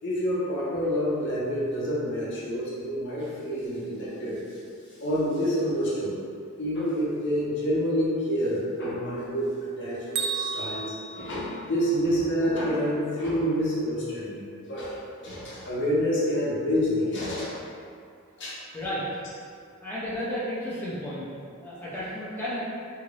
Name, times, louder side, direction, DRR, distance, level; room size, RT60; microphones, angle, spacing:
voice 1, 0.0-4.4 5.0-6.1 6.6-15.0 15.2-17.6 18.4-18.6, equal, 55° left, -7 dB, 0.7 m, -28 dB
Bell, 10.1-12.2, right 5 dB, 50° right, 0.3 m, -33 dB
voice 2, 18.7-19.0 19.8-21.2 21.6-22.6, equal, 10° left, -11 dB, 0.6 m, -32 dB
2.8 x 2.5 x 3.1 m, 2.3 s
head